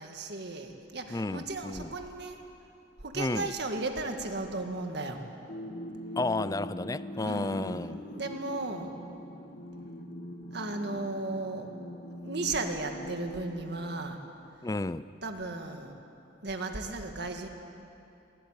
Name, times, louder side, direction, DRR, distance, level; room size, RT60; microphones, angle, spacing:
voice 1, 0.0-2.4 3.0-5.2 7.2-9.0 10.5-11.7 12.2-14.2 15.2-16.0 16.4-17.5, right 2 dB, 60° right, 5 dB, 1.9 m, -35 dB
voice 2, 1.1-1.9 3.1-3.5 6.2-8.0 14.6-15.1, left 2 dB, 20° left, 16 dB, 0.4 m, -32 dB
sound 1, 5.5-14.5, equal, 55° left, 2.2 m, -42 dB
21.0 x 16.5 x 9.1 m, 2.7 s
head